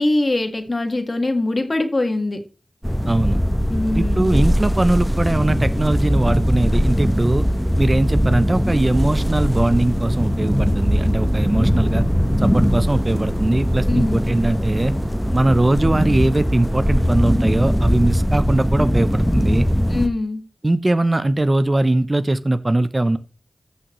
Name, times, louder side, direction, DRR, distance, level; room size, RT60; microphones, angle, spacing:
voice 1, 0.0-2.4 3.7-4.4 13.8-14.2 19.9-20.4, left 2 dB, 45° left, 6 dB, 1.7 m, -22 dB
sound 1, 2.8-20.1, equal, ahead, 1.0 m, -20 dB
voice 2, 3.1-3.4 3.9-7.5 7.8-12.0 12.4-14.9 15.3-19.7 20.6-23.2, right 2 dB, 35° right, 12 dB, 0.6 m, -20 dB
14.0 x 6.3 x 3.1 m, 0.35 s
cardioid pair, 50°, 0 cm